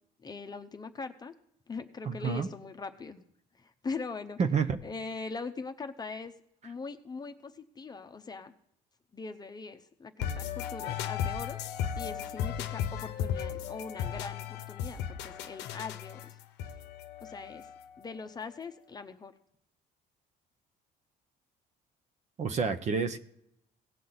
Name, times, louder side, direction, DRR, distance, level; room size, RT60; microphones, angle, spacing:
voice 1, 0.2-1.3 1.7-3.2 3.6-4.4 4.8-6.3 6.6-8.5 9.1-11.7 12.0-16.3 17.2-17.7 18.0-19.3, left 4 dB, 25° left, 7 dB, 0.8 m, -41 dB
voice 2, 2.0-2.5 4.4-4.8 22.4-23.2, right 5 dB, 45° right, 8 dB, 0.8 m, -29 dB
sound 1, 10.2-18.0, left 9 dB, 90° left, 0.8 m, -36 dB
17.5 x 6.2 x 4.0 m, 0.74 s
cardioid pair, 110°, 17 cm